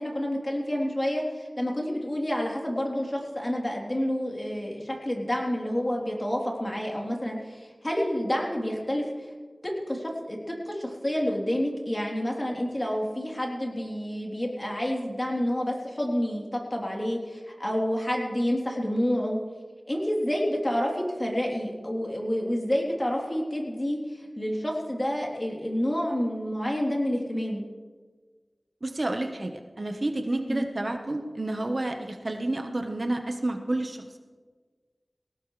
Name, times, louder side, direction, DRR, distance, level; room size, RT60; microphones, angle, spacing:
voice 1, 0.0-9.3 9.9-10.4 10.7-19.4 19.9-27.6 30.5-30.7, equal, 30° left, -1 dB, 3.3 m, -29 dB
voice 2, 28.8-34.2, right 2 dB, 45° right, 5 dB, 1.1 m, -30 dB
19.5 x 17.5 x 3.2 m, 1.4 s
wide cardioid pair, 60°, 0 cm